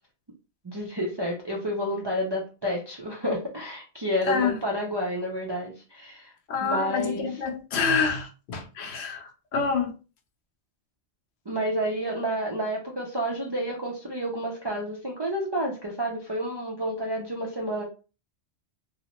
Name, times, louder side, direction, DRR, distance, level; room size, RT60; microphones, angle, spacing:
voice 1, 0.6-6.3 6.6-7.3 11.5-17.9, equal, 45° right, 0.3 m, -30 dB
voice 2, 6.5-9.9, left 5 dB, 70° left, 0.8 m, -27 dB
2.7 x 2.0 x 2.8 m
omnidirectional pair, 1.1 m